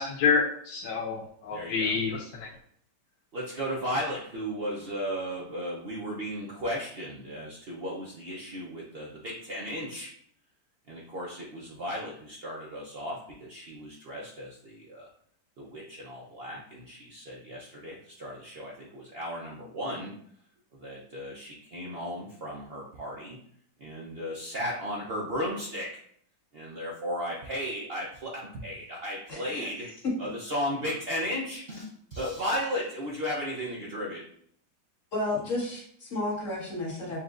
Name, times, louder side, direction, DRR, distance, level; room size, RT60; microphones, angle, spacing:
voice 1, 0.0-2.2, left 5 dB, 90° left, -2 dB, 1.4 m, -27 dB
voice 2, 1.5-2.0 3.3-10.1 10.9-15.1 15.6-20.2 20.8-23.4 23.8-26.0 26.5-29.9 30.2-34.2, equal, 70° right, -3 dB, 0.5 m, -35 dB
voice 3, 29.3-29.9 30.2-30.3 35.1-37.2, left 2 dB, 45° left, -5 dB, 1.8 m, -33 dB
7.3 x 2.6 x 2.4 m, 0.64 s
omnidirectional pair, 2.0 m